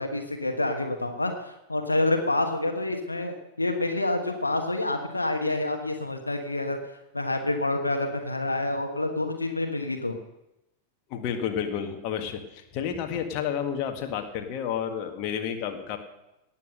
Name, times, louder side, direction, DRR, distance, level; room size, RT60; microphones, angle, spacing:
voice 1, 0.0-6.8 7.1-10.2, left 2 dB, 80° left, 5 dB, 1.3 m, -28 dB
voice 2, 11.1-16.0, left 8 dB, 40° left, 4 dB, 1.7 m, -31 dB
18.0 x 7.4 x 6.5 m, 0.90 s
figure-of-eight pair, 90°, 0 cm